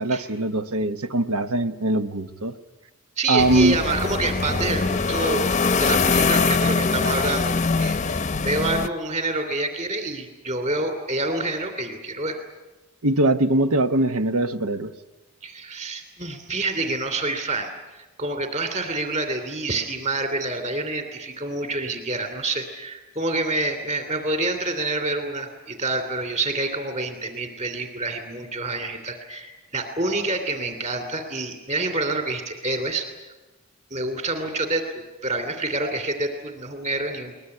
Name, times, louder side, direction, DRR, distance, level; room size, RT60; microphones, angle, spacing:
voice 1, 0.0-2.5 3.3-3.8 13.0-14.9, right 2 dB, 85° right, 10 dB, 1.2 m, -22 dB
voice 2, 3.2-5.5 5.8-12.4 15.4-33.1 33.9-34.9 35.2-37.3, right 2 dB, 30° right, 7 dB, 2.9 m, -27 dB
sound 1, 3.4-8.9, left 4 dB, 30° left, 0.7 m, -23 dB
22.5 x 20.5 x 9.7 m, 1.1 s
head